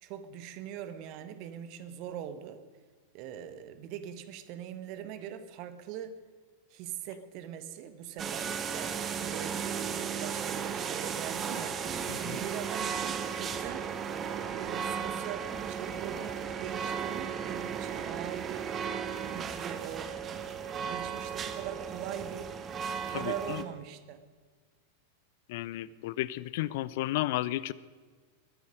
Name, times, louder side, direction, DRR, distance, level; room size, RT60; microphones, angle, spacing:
voice 1, 0.0-2.6 3.1-6.2 6.7-11.8 12.2-13.9 14.5-18.7 19.3-22.5 23.0-24.2, right 9 dB, 45° right, 11 dB, 1.2 m, -42 dB
sound 1, 8.2-23.6, right 7 dB, 25° right, 1.1 m, -35 dB
voice 2, 23.1-23.6 25.5-27.7, left 16 dB, 50° left, 19 dB, 0.4 m, -33 dB
21.5 x 9.6 x 5.2 m, 1.5 s
figure-of-eight pair, 90°, 0 cm